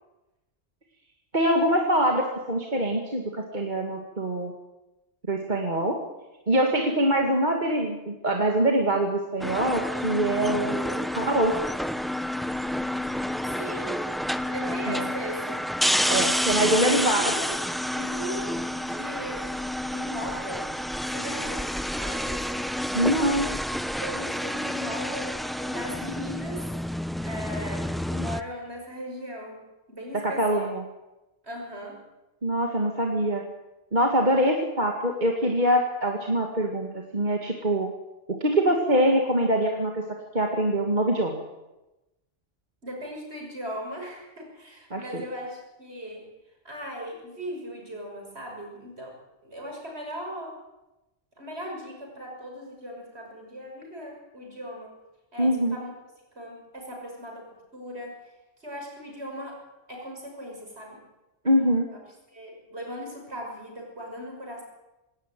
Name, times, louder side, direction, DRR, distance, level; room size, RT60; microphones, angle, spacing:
voice 1, 1.3-4.5 5.3-6.0 6.5-11.5 14.9-15.1 16.1-17.2 22.9-23.5 30.2-30.8 32.4-33.4 33.9-37.9 38.3-40.0 40.3-41.4 44.9-45.2 55.4-55.8 61.4-61.9, right 1 dB, 40° right, 2 dB, 2.2 m, -24 dB
sound 1, 9.4-28.4, equal, ahead, 0.4 m, -29 dB
voice 2, 13.5-14.0 14.5-15.6 16.9-17.6 17.9-19.6 19.9-20.7 21.1-22.6 24.0-26.7 27.2-29.6 29.9-30.7 31.4-32.0 42.8-46.3 46.6-49.2 49.4-50.6 51.4-54.9 55.3-55.9 56.3-58.1 58.6-59.6 59.9-61.0 61.9-62.0 62.3-64.6, equal, 60° right, 0 dB, 6.7 m, -38 dB
20.5 x 17.5 x 9.2 m, 1.0 s
omnidirectional pair, 1.3 m